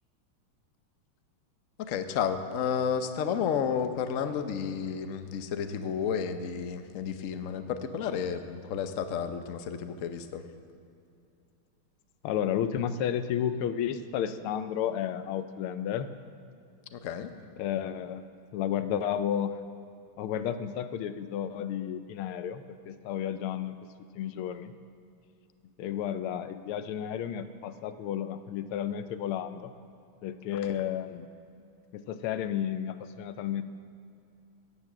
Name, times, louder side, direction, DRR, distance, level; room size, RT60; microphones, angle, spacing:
voice 1, 1.8-10.4 16.9-17.3, left 7 dB, 60° left, 8 dB, 0.8 m, -31 dB
voice 2, 12.2-16.1 17.6-18.2 18.5-19.6 20.2-23.8 24.1-24.7 25.8-29.7 30.2-31.3 31.9-33.6, left 9 dB, 90° left, 11 dB, 1.6 m, -32 dB
18.0 x 7.1 x 7.4 m, 2.6 s
omnidirectional pair, 2.3 m